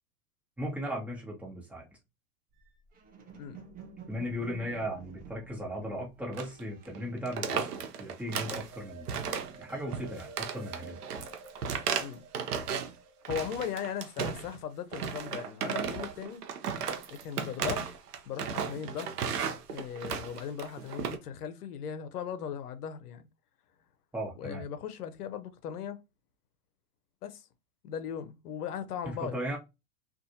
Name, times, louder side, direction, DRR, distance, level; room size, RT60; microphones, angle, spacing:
voice 1, 0.6-1.9 4.1-9.3 9.6-11.0 24.1-24.6 29.0-29.6, equal, 5° right, 1.1 m, -37 dB
sound 1, 2.5-8.1 8.4-10.7, right 5 dB, 20° right, 0.5 m, -52 dB
sound 2, 6.3-6.6 6.8-7.0 7.3-8.7 9.1-9.6 9.9-12.9 13.2-14.6 14.9-21.2, right 7 dB, 85° right, 0.7 m, -35 dB
sound 3, 8.7-14.8 15.9-16.1, right 4 dB, 55° right, 1.0 m, -51 dB
voice 2, 13.3-16.5 17.1-17.9 18.3-19.1 19.7-23.3 24.4-26.0 27.2-27.4 27.8-29.6, left 8 dB, 80° left, 0.7 m, -38 dB
2.5 x 2.4 x 2.7 m
hypercardioid pair, 105°, 45 cm